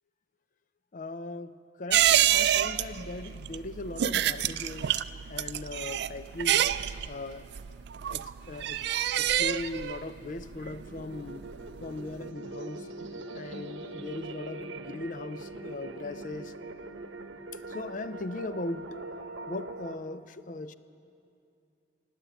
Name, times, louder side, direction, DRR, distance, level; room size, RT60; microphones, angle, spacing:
voice 1, 0.9-1.5 1.8-5.0 5.3-6.7 7.1-7.4 8.1-8.8 9.2-11.5 11.8-12.9 13.3-16.5 17.7-19.0 19.5-20.7, left 2 dB, 45° left, 13 dB, 0.5 m, -39 dB
sound 1, 1.9-11.9 12.1-12.2, right 11 dB, 60° right, 0.3 m, -28 dB
sound 2, 10.4-19.9, right 2 dB, 80° right, 0.9 m, -42 dB
18.0 x 9.0 x 8.1 m, 2.6 s
head